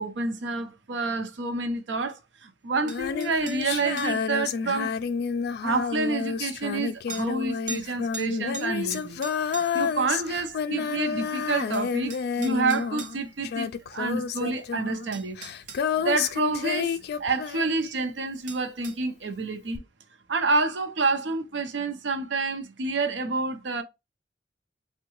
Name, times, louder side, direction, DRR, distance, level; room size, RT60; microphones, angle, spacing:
voice 1, 0.0-4.9 5.6-9.2 9.5-15.4 15.9-19.8 20.3-23.8, right 3 dB, 80° right, 0.6 m, -28 dB
Female singing, 2.8-18.2 19.7-19.8, left 6 dB, 60° left, 0.3 m, -30 dB
sound 1, 2.9-4.2 5.7-5.8 7.1-7.3 7.7-7.9 8.1-9.9 11.3-11.4 11.7-13.2 14.6-14.7 15.1-15.8 18.5-19.0, right 4 dB, 45° right, 0.8 m, -40 dB
3.6 x 2.2 x 2.9 m
head